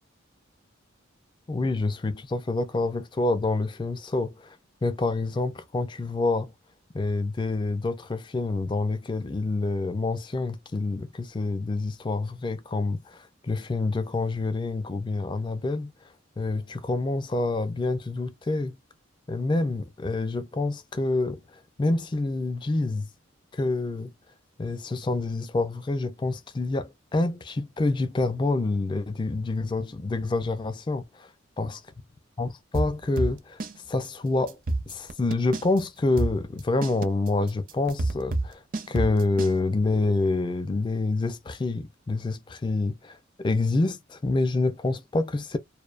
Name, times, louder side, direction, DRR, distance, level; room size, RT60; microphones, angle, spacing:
voice 1, 1.5-4.6 4.8-6.5 6.9-15.9 16.4-18.8 19.3-23.1 23.5-24.1 24.6-31.3 31.6-31.7 32.4-33.6 33.9-34.6 34.9-38.6 38.9-45.6, left 2 dB, 25° left, 0.3 m, -27 dB
sound 1, 32.7-33.8 34.0-34.1 34.5-35.8 36.2-39.5, right 2 dB, 45° right, 0.4 m, -28 dB
2.5 x 2.1 x 2.4 m
head